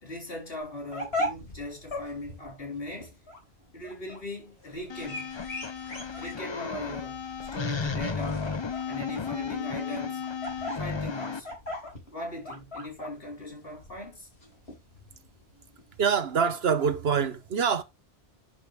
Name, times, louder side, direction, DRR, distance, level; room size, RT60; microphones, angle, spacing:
voice 1, 0.0-3.2 3.7-5.3 6.1-7.2 7.5-8.5 8.8-10.2 10.8-11.5 12.1-14.3, left 1 dB, 65° left, 4.3 m, -39 dB
sound 1, 0.6-17.2, left 1 dB, 85° left, 4.1 m, -39 dB
sound 2, 4.9-11.4, left 5 dB, 30° left, 0.7 m, -34 dB
voice 2, 16.0-17.8, right 6 dB, 75° right, 1.2 m, -25 dB
10.5 x 5.1 x 3.1 m
omnidirectional pair, 1.1 m